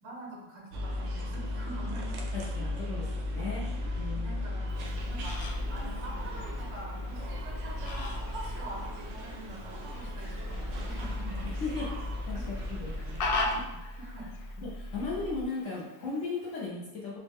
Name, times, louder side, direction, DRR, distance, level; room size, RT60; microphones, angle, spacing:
voice 1, 0.0-2.2 3.4-3.7 4.1-5.4 5.7-11.5 12.3-12.4 13.2-13.5 14.0-14.5, right 1 dB, 90° right, -2 dB, 1.7 m, -45 dB
sound 1, 0.7-13.6, left 1 dB, 70° right, 1.0 m, -36 dB
voice 2, 2.3-4.4 11.4-12.4 12.7-13.3 14.6-17.2, left 4 dB, 65° left, -5 dB, 0.8 m, -37 dB
sound 2, 3.7-15.4, equal, 55° right, 0.6 m, -42 dB
Fowl, 4.7-16.7, left 2 dB, 85° left, 1.3 m, -41 dB
4.4 x 2.1 x 3.5 m, 0.98 s
omnidirectional pair, 1.9 m